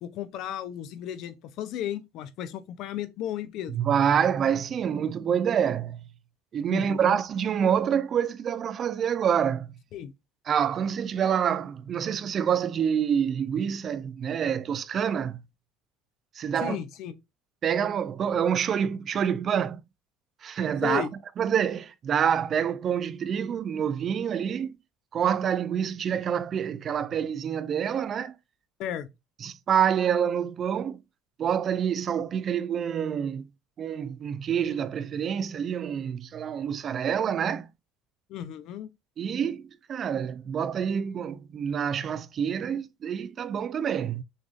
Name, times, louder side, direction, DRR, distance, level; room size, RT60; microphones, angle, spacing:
voice 1, 0.0-3.8 6.7-7.2 9.9-10.1 16.6-17.1 20.8-21.1 28.8-29.1 38.3-38.9, left 11 dB, 60° left, 0.6 m, -34 dB
voice 2, 3.7-6.0 6.5-9.7 10.5-15.4 16.4-16.8 17.6-19.8 20.4-21.1 21.4-24.8 25.1-28.3 29.4-31.0 31.4-33.5 33.8-37.7 39.2-44.2, right 8 dB, 35° right, 0.4 m, -27 dB
6.3 x 2.6 x 2.4 m
cardioid pair, 125°, 0 cm